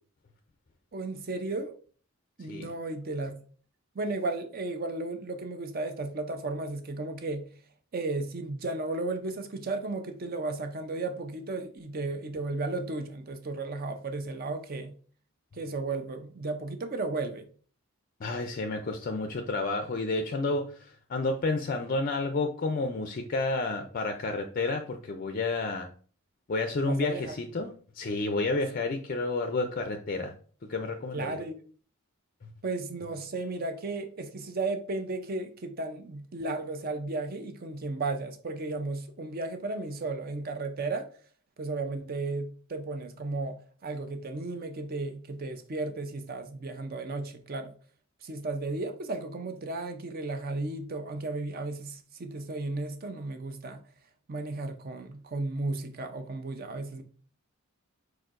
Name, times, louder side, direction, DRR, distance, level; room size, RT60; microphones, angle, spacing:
voice 1, 0.9-1.7 2.4-3.3 3.9-7.5 7.9-14.9 15.5-17.4 26.8-27.4 31.1-31.6 32.6-41.1 41.6-43.6 43.8-47.7 48.2-53.8 54.3-57.0, right 2 dB, 45° right, 0.5 m, -34 dB
voice 2, 18.2-25.9 26.5-30.3 30.7-31.4, left 3 dB, 40° left, 0.4 m, -30 dB
4.6 x 4.4 x 2.5 m
head